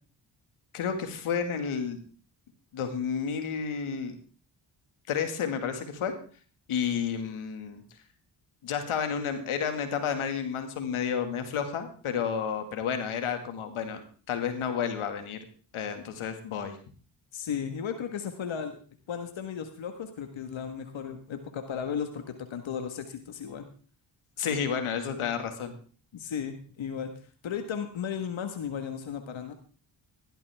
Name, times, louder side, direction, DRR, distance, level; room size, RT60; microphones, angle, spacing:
voice 1, 0.7-2.0 2.7-4.1 5.1-6.1 6.7-7.8 8.6-14.0 14.3-15.4 15.7-16.8 24.4-25.8, left 7 dB, 85° left, 7 dB, 2.1 m, -31 dB
voice 2, 17.3-18.8 19.1-23.7 26.1-27.1 27.4-29.5, left 7 dB, 65° left, 6 dB, 1.6 m, -35 dB
16.0 x 12.5 x 3.5 m, 0.40 s
cardioid pair, 55°, 49 cm